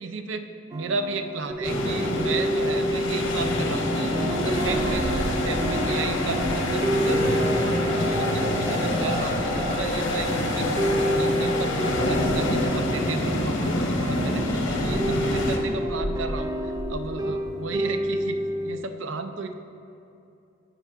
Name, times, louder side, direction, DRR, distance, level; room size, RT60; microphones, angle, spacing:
voice 1, 0.0-10.8 11.1-19.5, right 4 dB, 70° right, 7 dB, 0.5 m, -34 dB
sound 1, 0.7-18.8, right 1 dB, 20° right, 0.4 m, -29 dB
sound 2, 1.5-1.7 4.4-6.7 7.2-7.7 12.0-12.9 14.2-17.3 17.6-17.8, left 1 dB, 45° left, 1.0 m, -37 dB
sound 3, 1.6-15.6, left 1 dB, 85° left, 1.0 m, -26 dB
16.0 x 5.6 x 2.4 m, 2.7 s
head